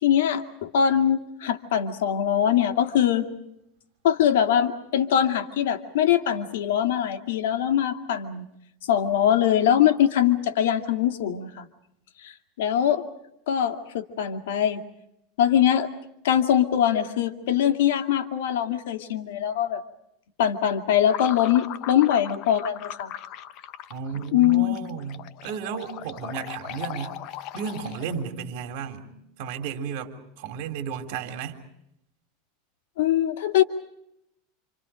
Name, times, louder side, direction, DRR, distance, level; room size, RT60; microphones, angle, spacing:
voice 1, 0.0-3.3 4.0-8.4 8.9-11.7 12.2-12.3 12.6-13.0 13.5-14.8 15.4-15.9 16.2-19.8 20.4-23.1 24.3-24.8 33.0-33.6, left 10 dB, 80° left, 2.4 m, -22 dB
sound 1, 21.1-28.3, left 11 dB, 45° left, 1.1 m, -39 dB
voice 2, 23.9-27.1 27.5-29.1 29.4-31.6, right 7 dB, 60° right, 3.7 m, -33 dB
28.0 x 28.0 x 5.1 m
supercardioid pair, 155°, 0 cm